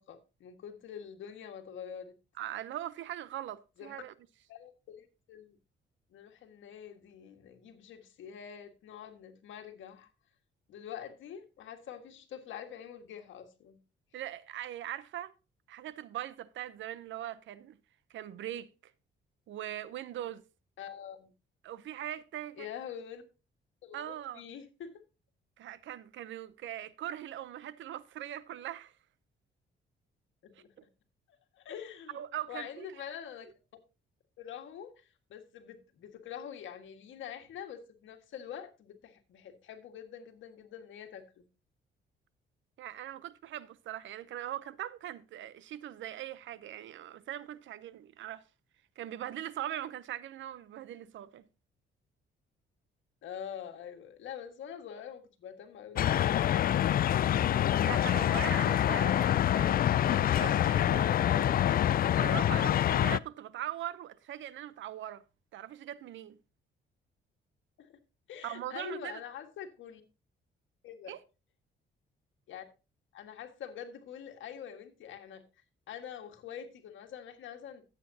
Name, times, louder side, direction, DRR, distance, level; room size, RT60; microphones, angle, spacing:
voice 1, 0.0-2.1 3.8-4.0 4.5-5.6 6.1-10.1 10.7-13.8 20.8-21.3 22.6-23.2 23.8-24.9 30.4-30.7 31.6-32.2 32.5-33.5 34.4-41.5 53.2-56.7 67.8-68.0 68.3-70.0 70.8-71.2 72.5-72.6 73.1-75.4 75.9-77.8, left 8 dB, 75° left, 1.7 m, -45 dB
voice 2, 2.4-4.1 14.1-15.3 15.7-17.8 18.1-18.7 19.5-20.4 21.6-22.7 23.9-24.4 25.6-28.9 32.1-33.0 42.8-48.4 49.0-51.4 57.8-61.6 62.0-65.2 65.5-66.4 68.4-69.2 71.1-71.2, right 12 dB, 75° right, 0.7 m, -41 dB
sound 1, 56.0-63.2, left 11 dB, 50° left, 0.4 m, -26 dB
13.5 x 8.2 x 2.8 m
cardioid pair, 90°, 20 cm